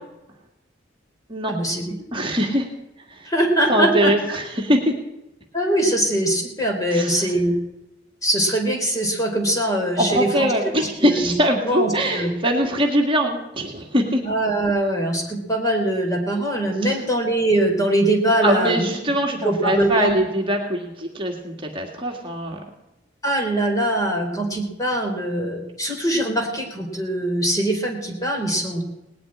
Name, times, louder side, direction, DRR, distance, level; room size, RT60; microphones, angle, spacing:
voice 1, 1.5-1.9 3.3-4.1 5.5-7.6 8.2-11.3 11.7-12.3 14.2-18.8 19.3-20.2 23.2-28.9, right 1 dB, 20° left, 1 dB, 3.7 m, -22 dB
voice 2, 2.1-2.7 3.1-3.3 3.7-4.9 6.9-7.3 10.0-14.2 16.8-17.0 18.4-22.6, equal, 30° right, 1 dB, 2.0 m, -22 dB
19.0 x 7.7 x 9.9 m, 0.91 s
head